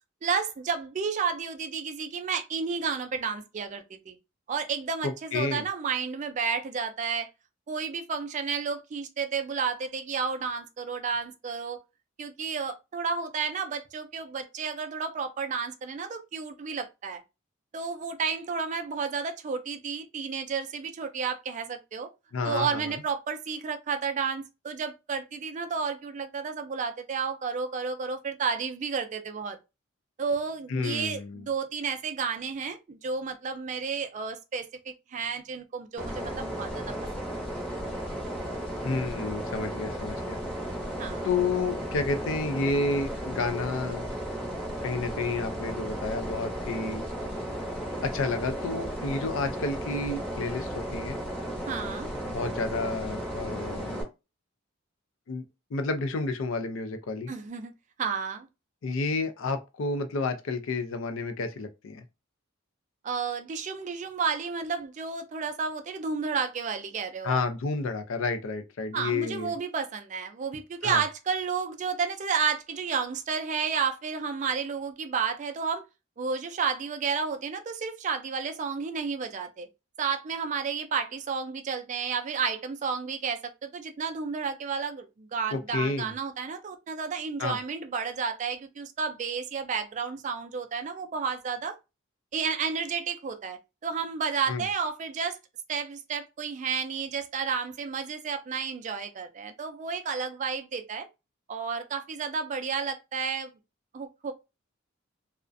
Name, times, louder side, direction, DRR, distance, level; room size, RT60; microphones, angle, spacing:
voice 1, 0.2-4.2 4.5-7.3 7.7-11.8 12.2-17.2 17.7-22.1 22.4-29.6 30.2-36.8 41.0-41.3 51.7-52.1 57.3-57.7 58.0-58.5 63.0-67.4 68.9-75.8 76.2-79.7 80.0-91.8 92.3-95.4 95.7-101.1 101.5-103.5 103.9-104.3, right 5 dB, 35° right, 0.3 m, -31 dB
voice 2, 5.0-5.6 22.3-22.8 30.7-31.4 38.8-40.4 41.2-44.0 44.8-47.0 48.0-51.2 52.2-54.0 55.3-55.4 55.7-57.3 58.8-62.0 67.2-69.6 70.8-71.0 85.5-86.1 87.4-87.6 94.5-94.6, left 3 dB, 70° left, 0.4 m, -30 dB
sound 1, 36.0-54.0, right 1 dB, 5° left, 0.7 m, -34 dB
2.4 x 2.1 x 2.5 m
head